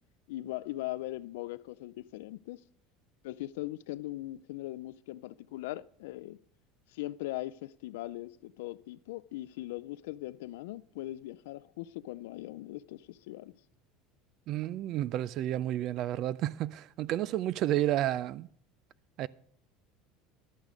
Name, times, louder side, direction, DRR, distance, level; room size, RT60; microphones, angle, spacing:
voice 1, 0.3-2.6 3.2-6.4 6.9-13.5, left 16 dB, 90° left, 0.3 m, -40 dB
voice 2, 14.5-18.5 19.2-19.3, right 13 dB, 45° right, 0.3 m, -31 dB
11.0 x 8.3 x 5.0 m
cardioid pair, 150°, 0 cm